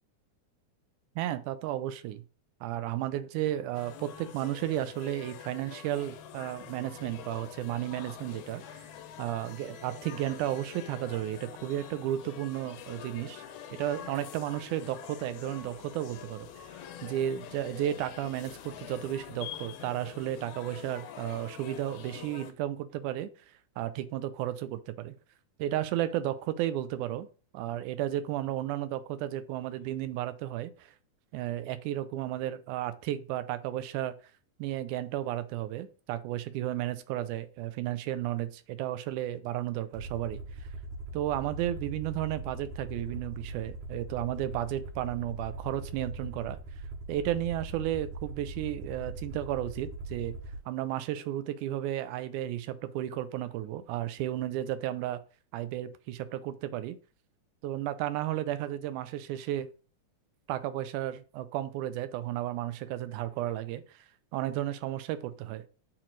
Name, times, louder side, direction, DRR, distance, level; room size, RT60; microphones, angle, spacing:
voice 1, 1.2-2.2 2.6-8.9 9.2-13.5 13.7-16.7 17.0-23.3 23.8-25.1 25.6-27.3 27.5-30.9 31.3-34.1 34.6-40.4 41.1-46.6 47.1-50.4 50.7-55.2 55.5-57.0 57.6-59.7 60.5-64.0 64.3-65.7, right 13 dB, 80° right, 13 dB, 2.0 m, -33 dB
sound 1, 3.7-22.5, left 9 dB, 80° left, 2.1 m, -46 dB
Aircraft, 39.9-50.6, right 2 dB, 65° right, 2.5 m, -41 dB
8.6 x 3.0 x 3.8 m, 0.36 s
omnidirectional pair, 3.7 m